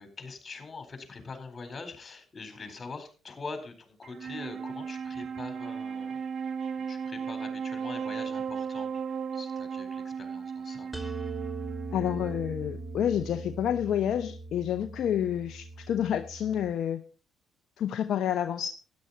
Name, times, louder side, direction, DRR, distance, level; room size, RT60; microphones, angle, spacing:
voice 1, 0.0-6.1 6.9-8.9 9.3-10.9, left 4 dB, 35° left, 4.1 m, -43 dB
Wind instrument woodwind instrument, 4.0-13.5, right 6 dB, 55° right, 0.8 m, -36 dB
sound 1, 10.9-16.7, right 3 dB, 5° right, 2.1 m, -40 dB
voice 2, 11.9-17.0 17.8-18.7, left 10 dB, 65° left, 0.6 m, -29 dB
12.5 x 10.5 x 4.0 m
hypercardioid pair, 50°, 0 cm